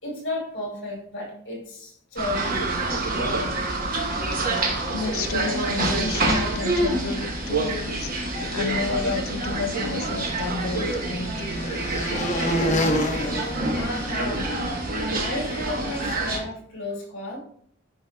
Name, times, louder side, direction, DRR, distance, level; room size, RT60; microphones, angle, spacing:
voice 1, 0.0-2.7 3.7-3.8 4.2-4.5 8.3-8.5 13.7-14.5 15.1-17.4, left 2 dB, 60° left, -2 dB, 2.9 m, -33 dB
sound 1, 2.2-16.4, right 2 dB, 45° right, 1.1 m, -27 dB
voice 2, 4.9-11.6, left 4 dB, 90° left, 10 dB, 0.6 m, -31 dB
sound 2, 10.1-14.5, equal, 35° left, 0.8 m, -28 dB
10.0 x 4.8 x 2.2 m, 0.63 s
head